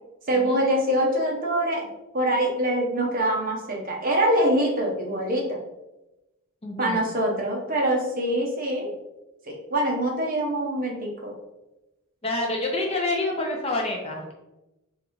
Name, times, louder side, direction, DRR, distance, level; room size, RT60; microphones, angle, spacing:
voice 1, 0.3-1.8 2.1-5.6 6.8-8.9 9.4-11.3, right 1 dB, 40° right, 0 dB, 0.8 m, -24 dB
voice 2, 6.6-7.0 12.2-14.3, left 2 dB, 25° left, 0 dB, 0.6 m, -28 dB
3.7 x 3.6 x 3.1 m, 0.97 s
head